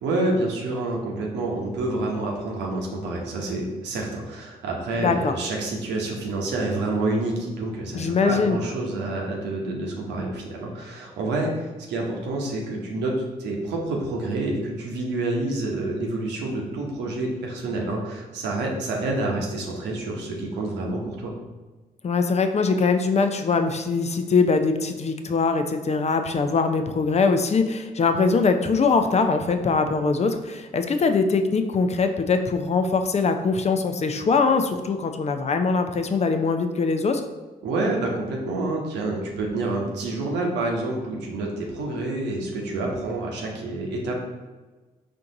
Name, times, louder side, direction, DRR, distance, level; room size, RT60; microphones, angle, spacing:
voice 1, 0.0-21.3 37.6-44.2, right 2 dB, 85° right, 0 dB, 0.9 m, -28 dB
voice 2, 5.0-5.3 7.9-8.6 22.0-37.2, left 4 dB, 40° left, 7 dB, 0.5 m, -22 dB
4.4 x 2.6 x 3.8 m, 1.3 s
supercardioid pair, 50°, 17 cm